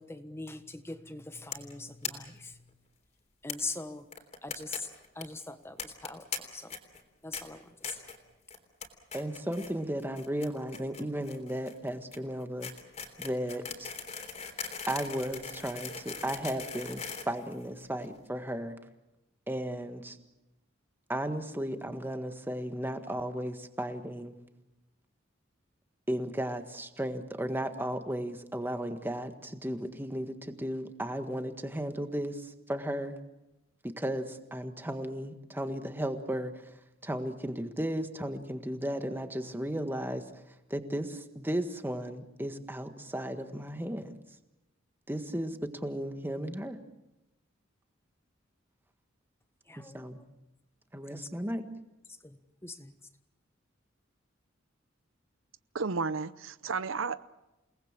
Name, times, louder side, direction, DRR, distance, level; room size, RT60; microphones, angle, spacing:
voice 1, 0.0-2.8 3.4-4.1 4.4-6.8 7.2-8.1 49.7-50.3 51.1-51.2 52.1-53.0, left 3 dB, 15° left, 9 dB, 1.3 m, -42 dB
sound 1, 1.5-1.7 2.0-2.1 2.4-2.5 2.7-2.8 3.5-3.6 4.1-4.8 5.0-5.2 5.8-6.4 6.7-7.0 7.3-7.4 7.8-8.2 8.5-8.9 9.1-9.7 10.0-18.0, left 6 dB, 35° left, 3.4 m, -40 dB
voice 2, 9.1-12.7 13.2-13.9 14.9-18.8 19.5-20.2 21.1-24.3 26.1-33.2 33.8-36.6 37.0-40.4 40.7-44.1 45.1-46.8 49.9-50.2 50.9-51.6, right 1 dB, 10° right, 8 dB, 1.6 m, -35 dB
voice 3, 55.7-57.2, right 4 dB, 85° right, 15 dB, 0.8 m, -32 dB
29.0 x 19.5 x 7.5 m, 0.96 s
head